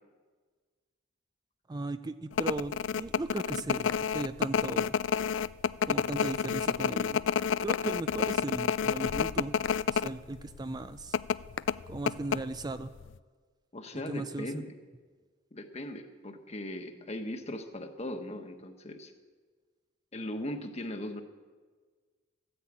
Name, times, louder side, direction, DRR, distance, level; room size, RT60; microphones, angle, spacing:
voice 1, 1.7-4.9 5.8-7.2 7.6-9.5 9.9-11.2 11.9-12.9 14.1-14.5, right 2 dB, 20° right, 11 dB, 0.4 m, -37 dB
sound 1, 2.3-10.1 10.4-10.5 11.1-12.8 13.1-13.2, left 7 dB, 75° left, 0.4 m, -29 dB
voice 2, 13.7-14.7 15.5-19.1 20.1-21.2, left 1 dB, 35° left, 6 dB, 1.3 m, -39 dB
14.5 x 9.8 x 8.6 m, 1.5 s
head